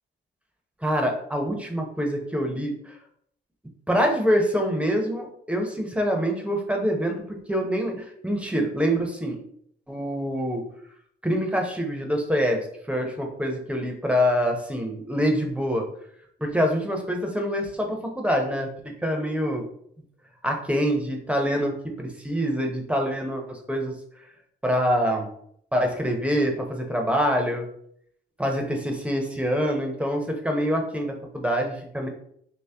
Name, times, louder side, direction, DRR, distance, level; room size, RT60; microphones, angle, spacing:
voice 1, 0.8-3.0 3.9-9.4 9.9-10.6 11.2-12.6 12.9-15.8 16.4-18.7 19.0-19.6 20.4-23.9 24.6-25.3 25.7-27.7 28.4-32.1, equal, 5° right, 2 dB, 0.9 m, -25 dB
3.1 x 2.9 x 3.4 m, 0.67 s
supercardioid pair, 65°, 21 cm